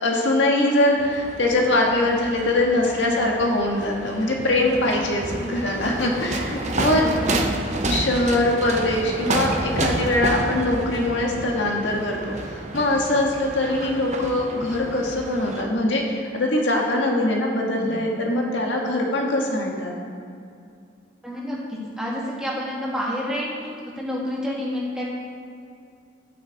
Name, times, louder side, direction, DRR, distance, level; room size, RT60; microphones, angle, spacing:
voice 1, 0.0-7.0 7.9-16.0 16.3-19.9, left 1 dB, 75° left, 0 dB, 1.6 m, -22 dB
sound 1, 1.0-15.6, right 2 dB, 40° right, 0.8 m, -30 dB
voice 2, 6.9-7.4 17.7-18.0 21.2-25.0, equal, 5° right, -6 dB, 2.1 m, -29 dB
12.0 x 9.4 x 4.0 m, 2.4 s
head